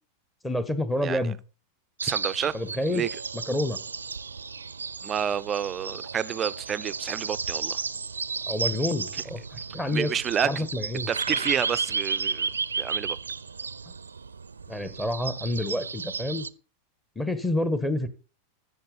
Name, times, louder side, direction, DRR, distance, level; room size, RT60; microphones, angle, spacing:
voice 1, 0.4-1.4 2.5-3.0 3.5-3.8 8.5-10.1 10.4-11.1 14.7-16.5 17.1-18.1, left 1 dB, 10° left, 1.4 m, -28 dB
voice 2, 1.0-1.3 2.0-2.5 2.9-3.1 5.0-7.8 9.1-9.2 9.9-10.7 11.1-12.5 12.8-13.2, right 8 dB, 25° right, 0.5 m, -29 dB
sound 1, 2.0-16.5, right 5 dB, 75° right, 0.5 m, -33 dB
14.0 x 7.1 x 5.3 m
figure-of-eight pair, 90°, 0 cm